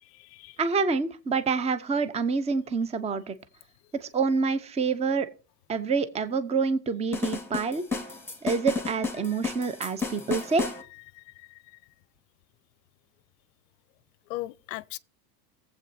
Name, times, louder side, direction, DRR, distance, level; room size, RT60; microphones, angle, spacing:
voice 1, 0.0-0.6 11.1-11.8 14.3-15.0, left 19 dB, 50° left, 0.6 m, -39 dB
voice 2, 0.6-3.4 4.0-5.3 5.7-7.8 8.4-10.7, right 5 dB, 15° right, 0.7 m, -27 dB
sound 1, 7.1-10.8, left 4 dB, 5° left, 1.9 m, -32 dB
18.0 x 8.0 x 2.7 m
hypercardioid pair, 110°, 50 cm